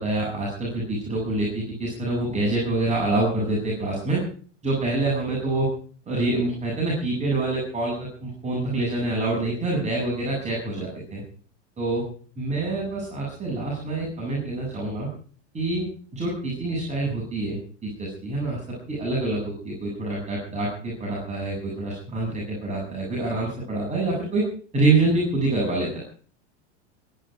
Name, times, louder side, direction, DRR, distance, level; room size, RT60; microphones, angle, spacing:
voice 1, 0.0-4.2 4.6-5.7 6.1-11.2 11.8-12.0 12.4-15.1 15.5-15.9 16.1-18.6 18.9-24.5 24.7-26.0, right 2 dB, 20° right, -3 dB, 7.7 m, -26 dB
21.5 x 11.5 x 5.0 m, 0.43 s
hypercardioid pair, 115°, 36 cm